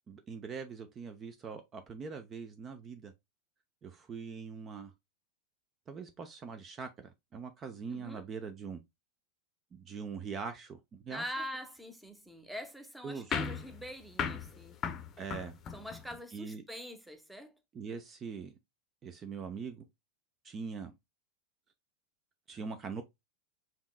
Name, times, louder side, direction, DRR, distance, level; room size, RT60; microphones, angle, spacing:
voice 1, 0.1-3.1 3.8-4.9 5.9-8.8 9.7-11.2 13.0-13.3 15.2-15.5 16.3-16.6 17.7-18.5 19.0-19.9 20.4-20.9 22.5-23.0, right 5 dB, 30° right, 0.6 m, -42 dB
voice 2, 7.9-8.2 11.1-14.8 15.7-17.6, equal, ahead, 0.9 m, -44 dB
sound 1, 13.3-16.2, left 7 dB, 35° left, 0.7 m, -37 dB
5.4 x 3.0 x 2.3 m
hypercardioid pair, 95°, 0 cm